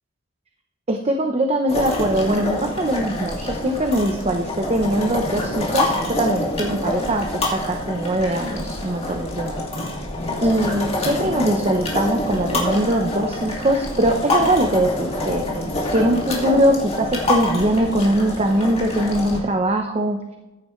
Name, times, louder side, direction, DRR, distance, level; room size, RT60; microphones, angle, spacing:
voice 1, 0.9-9.6 10.4-15.5 15.9-20.2, right 1 dB, 30° right, 4 dB, 0.8 m, -21 dB
sound 1, 1.7-19.4, left 1 dB, 30° left, 2.3 m, -26 dB
14.5 x 9.5 x 3.2 m, 1.1 s
head